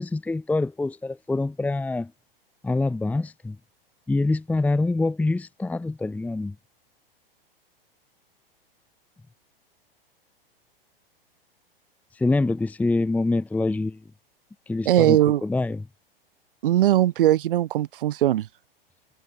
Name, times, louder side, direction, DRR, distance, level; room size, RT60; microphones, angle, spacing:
voice 1, 0.0-2.1 2.6-3.6 4.1-6.5 12.2-14.0 14.7-15.8, left 2 dB, 5° left, 0.9 m, -25 dB
voice 2, 14.9-15.4 16.6-18.5, right 13 dB, 65° right, 0.7 m, -20 dB
figure-of-eight pair, 100°, 29 cm